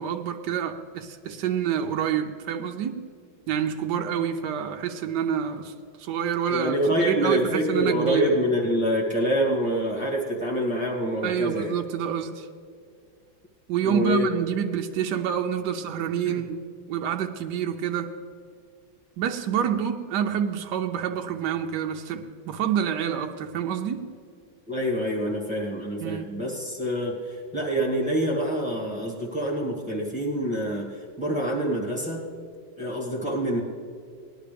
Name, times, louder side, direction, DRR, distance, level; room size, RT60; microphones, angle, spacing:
voice 1, 0.0-3.1 3.5-5.7 6.0-8.3 11.2-12.5 13.7-16.6 16.9-18.1 19.2-24.1 26.0-26.4, right 8 dB, 70° right, 4 dB, 1.1 m, -27 dB
voice 2, 6.5-11.7 13.8-14.3 16.0-16.4 24.7-32.2 32.8-33.6, equal, 5° right, -4 dB, 1.8 m, -26 dB
19.0 x 11.0 x 3.4 m, 2.2 s
omnidirectional pair, 2.1 m